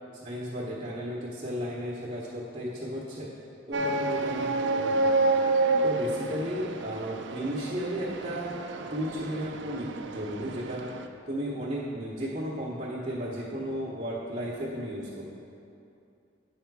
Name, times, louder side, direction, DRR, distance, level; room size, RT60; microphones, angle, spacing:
voice 1, 0.1-3.3 3.7-4.4 4.7-5.1 5.8-8.6 8.9-10.9 11.3-15.3, equal, 40° right, -9 dB, 1.0 m, -34 dB
sound 1, 3.7-11.1, right 2 dB, 70° right, 0.4 m, -29 dB
8.8 x 5.6 x 4.7 m, 2.6 s
head